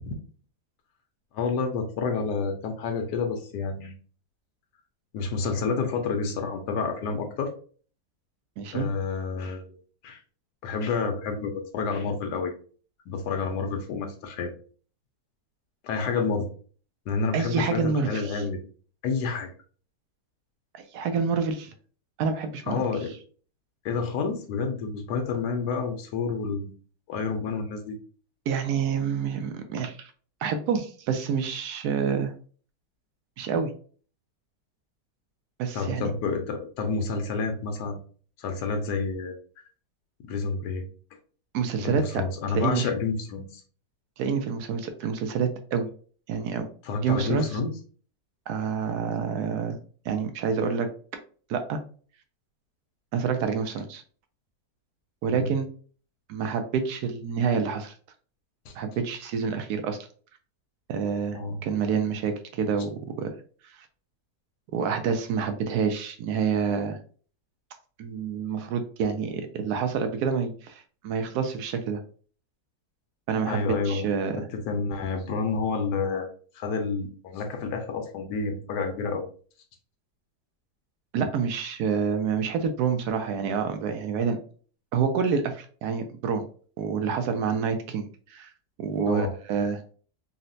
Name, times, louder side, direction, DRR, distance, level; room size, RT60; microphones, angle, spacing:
voice 1, 1.3-3.9 5.1-7.5 8.7-9.8 10.0-10.2 10.6-12.5 13.1-14.5 15.8-16.5 17.1-18.6 19.0-19.5 22.7-23.1 23.8-26.7 27.1-28.0 35.7-38.0 38.4-39.4 40.2-40.9 41.8-43.6 46.8-47.8 55.3-55.5 58.7-58.8 61.3-61.6 73.5-74.1 74.5-76.3 76.6-79.2 89.1-89.3, left 4 dB, 80° left, 5 dB, 1.3 m, -29 dB
voice 2, 8.6-8.9 17.3-18.4 20.7-21.7 22.2-22.8 28.5-30.1 30.4-32.3 33.4-33.7 35.6-36.1 41.5-42.0 42.5-42.9 44.2-45.9 46.3-46.7 47.0-47.5 48.5-49.8 50.1-50.9 51.5-51.8 53.1-54.0 55.2-55.7 56.3-57.9 58.8-60.0 60.9-63.3 64.7-67.0 68.0-72.0 73.3-73.6 73.9-74.4 81.1-84.4 84.9-86.4 86.8-88.5 88.8-89.8, right 6 dB, 75° right, 7 dB, 1.1 m, -27 dB
4.0 x 2.1 x 2.5 m, 0.42 s
omnidirectional pair, 1.8 m